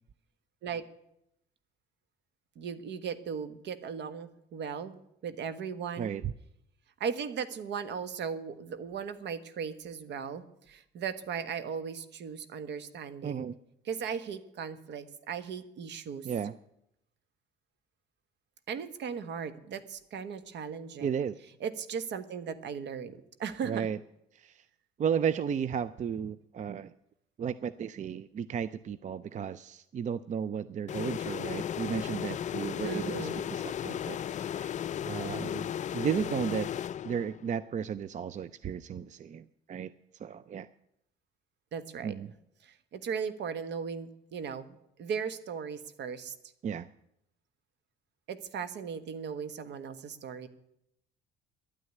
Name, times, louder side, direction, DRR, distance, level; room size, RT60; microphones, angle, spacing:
voice 1, 2.5-5.0 5.2-6.1 7.0-13.5 13.8-16.3 18.7-21.2 21.6-23.9 32.8-33.4 41.7-42.1 42.6-46.3 48.3-50.5, right 6 dB, 65° right, 12 dB, 1.3 m, -37 dB
voice 2, 6.0-6.3 13.2-13.5 16.2-16.6 21.0-21.4 23.6-24.0 24.3-24.6 25.0-26.9 27.4-34.8 35.1-36.7 37.0-39.9 40.2-40.7 42.0-42.3 46.6-46.9, right 8 dB, 40° right, 16 dB, 0.5 m, -34 dB
sound 1, 30.9-37.5, left 9 dB, 40° left, 0.4 m, -35 dB
11.0 x 9.6 x 9.4 m, 0.79 s
supercardioid pair, 85°, 19 cm